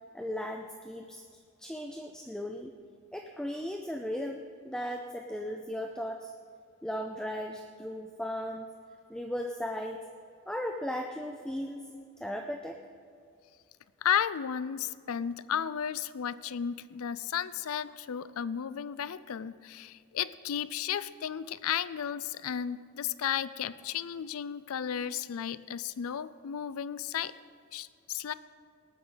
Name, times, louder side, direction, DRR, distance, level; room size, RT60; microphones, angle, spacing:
voice 1, 0.1-1.2 1.6-2.7 3.1-6.3 6.8-8.7 9.1-10.0 10.5-11.8 12.2-12.8, equal, 5° left, 3 dB, 0.4 m, -36 dB
voice 2, 14.0-27.3 27.7-28.3, left 8 dB, 80° left, 16 dB, 0.4 m, -34 dB
19.0 x 9.3 x 3.9 m, 2.3 s
head